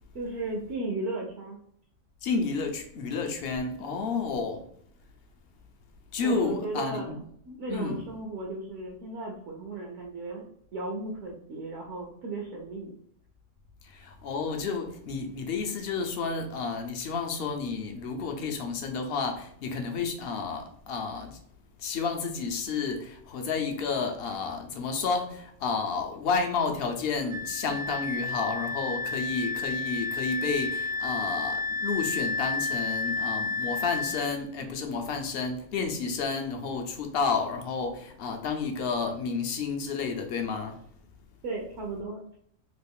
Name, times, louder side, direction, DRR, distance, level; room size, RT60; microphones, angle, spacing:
voice 1, 0.1-1.6 6.2-10.5 10.7-12.9 41.4-42.2, right 2 dB, 65° right, 0.9 m, -35 dB
voice 2, 2.2-4.7 6.1-7.1 7.7-8.1 13.8-21.4 21.8-40.8, left 4 dB, 60° left, 0.7 m, -31 dB
Wind instrument woodwind instrument, 27.3-34.3, left 4 dB, 35° right, 0.5 m, -31 dB
3.1 x 2.5 x 3.5 m
omnidirectional pair, 1.4 m